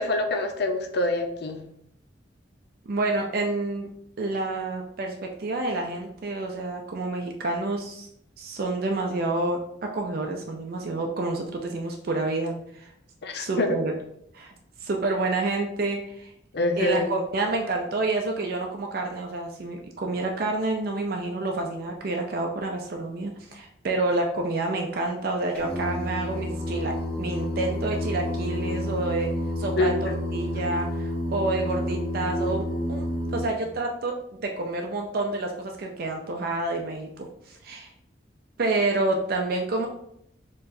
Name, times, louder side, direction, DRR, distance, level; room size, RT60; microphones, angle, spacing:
voice 1, 0.0-1.6 13.2-13.8 16.5-17.1 29.8-30.1, left 2 dB, 60° left, 5 dB, 0.5 m, -25 dB
voice 2, 2.9-3.9 4.2-8.1 8.4-12.9 13.4-13.9 14.3-14.5 14.8-16.3 16.8-29.9 30.3-33.1 33.3-37.9 38.6-39.9, right 2 dB, 55° right, 2 dB, 0.4 m, -28 dB
Singing, 25.5-33.4, left 1 dB, 5° left, 1.3 m, -30 dB
4.4 x 3.0 x 2.6 m, 0.73 s
head